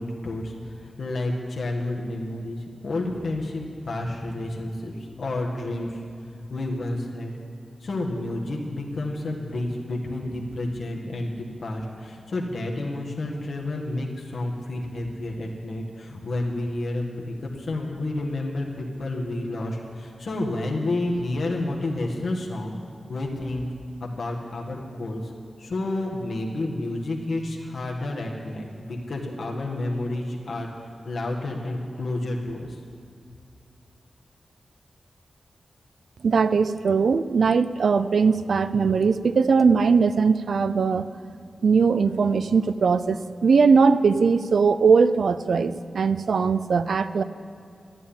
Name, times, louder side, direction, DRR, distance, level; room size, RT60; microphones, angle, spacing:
voice 1, 0.0-6.0 6.5-7.3 7.8-22.8 23.1-23.6 24.0-25.3 25.6-30.7 31.0-32.8, left 2 dB, 70° left, -1 dB, 1.8 m, -30 dB
voice 2, 36.2-41.1 41.6-47.2, right 5 dB, 80° right, 14 dB, 0.5 m, -20 dB
12.5 x 11.0 x 8.9 m, 2.4 s
wide cardioid pair, 100°, 0 cm